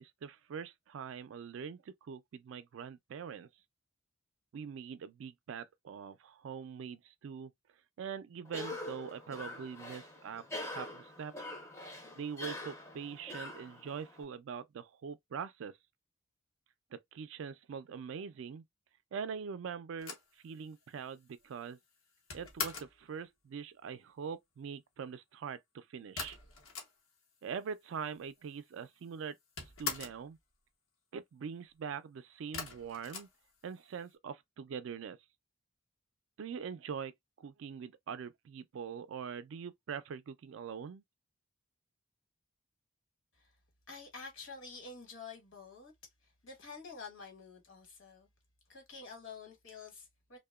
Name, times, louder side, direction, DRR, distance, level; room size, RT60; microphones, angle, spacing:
voice 1, 0.0-3.5 4.5-7.5 8.0-11.3 12.2-15.8 16.9-18.6 19.1-20.1 20.4-21.8 22.3-26.4 27.4-29.4 29.8-30.4 31.1-33.3 33.6-35.2 36.4-41.0, right 6 dB, 70° right, 0.3 m, -43 dB
Cough, 8.4-14.2, left 1 dB, 15° left, 0.5 m, -44 dB
sound 1, 20.0-23.0 26.2-27.3 27.6-27.7 27.9-28.7 29.0-30.3 32.5-34.0, left 5 dB, 85° left, 0.9 m, -42 dB
voice 2, 43.9-45.9 46.2-48.3 48.7-50.4, left 4 dB, 65° left, 1.1 m, -49 dB
2.8 x 2.1 x 2.2 m
head